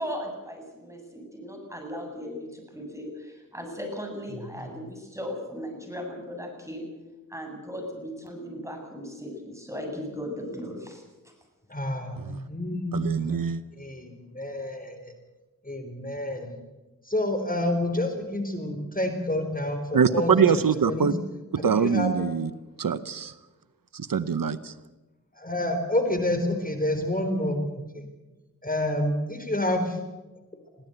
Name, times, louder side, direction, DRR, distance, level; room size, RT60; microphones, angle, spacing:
voice 1, 0.0-6.9 7.3-11.0, equal, 10° right, 2 dB, 7.8 m, -37 dB
voice 2, 11.7-13.4 13.8-15.1 15.7-16.5 17.1-20.3 20.8-21.1 21.6-22.1 25.4-27.7 28.6-30.0, left 1 dB, 25° left, 6 dB, 4.0 m, -28 dB
voice 3, 12.9-13.6 19.9-21.1 21.6-22.5 22.8-23.3 23.9-24.7, right 6 dB, 80° right, 14 dB, 0.9 m, -23 dB
22.5 x 16.0 x 8.0 m, 1.1 s
wide cardioid pair, 55°, 33 cm